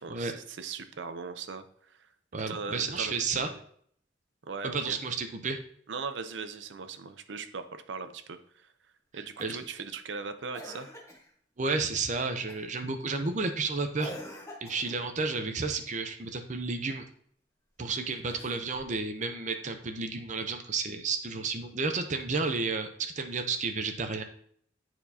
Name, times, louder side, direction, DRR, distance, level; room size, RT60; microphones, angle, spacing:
voice 1, 0.0-1.6 2.0-2.1 2.5-3.6 4.4-5.0 5.9-8.7 9.1-10.9, right 5 dB, 90° right, 10 dB, 0.6 m, -39 dB
voice 2, 2.3-3.5 4.6-5.6 9.1-9.6 11.6-14.1 14.6-17.0 17.8-24.2, right 4 dB, 40° right, 7 dB, 0.7 m, -32 dB
Cough, 9.4-9.8 10.5-11.3 12.5-12.8 14.0-15.1 18.2-18.9 20.4-20.5, equal, 15° left, 1.2 m, -45 dB
10.0 x 4.5 x 2.7 m, 0.62 s
head